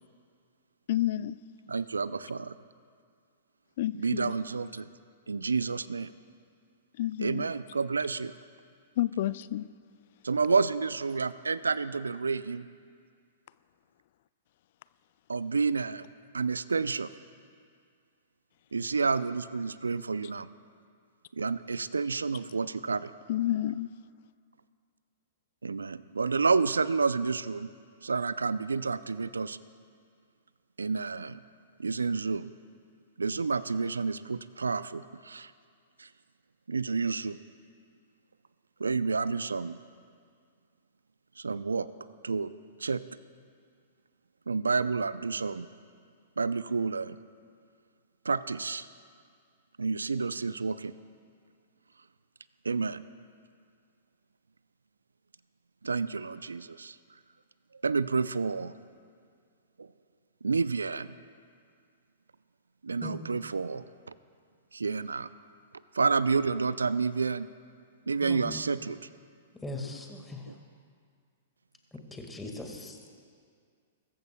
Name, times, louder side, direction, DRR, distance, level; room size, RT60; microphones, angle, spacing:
voice 1, 0.9-1.4 3.8-4.3 7.0-7.5 9.0-9.7 23.3-23.9, left 13 dB, 55° left, 0.3 m, -29 dB
voice 2, 1.7-2.6 3.9-4.9 5.3-6.1 7.2-8.3 10.2-12.7 15.3-16.1 16.3-17.1 18.7-20.5 21.3-23.1 25.6-27.7 28.0-29.6 30.8-31.4 31.8-32.5 33.2-35.5 36.0-36.1 36.7-37.4 38.8-39.8 41.4-41.9 42.2-42.5 42.8-43.0 44.5-45.7 46.4-47.2 48.2-48.9 49.8-50.9 52.6-53.0 55.8-57.0 57.8-58.7 59.8-59.9 60.4-61.1 62.8-64.1 64.7-65.3 65.9-67.5 68.1-69.0 70.5-70.6, right 4 dB, 80° right, 0.4 m, -29 dB
voice 3, 68.2-68.6 69.6-70.4 72.1-73.0, left 2 dB, 10° left, 1.8 m, -39 dB
22.0 x 14.0 x 2.3 m
figure-of-eight pair, 110°, 0 cm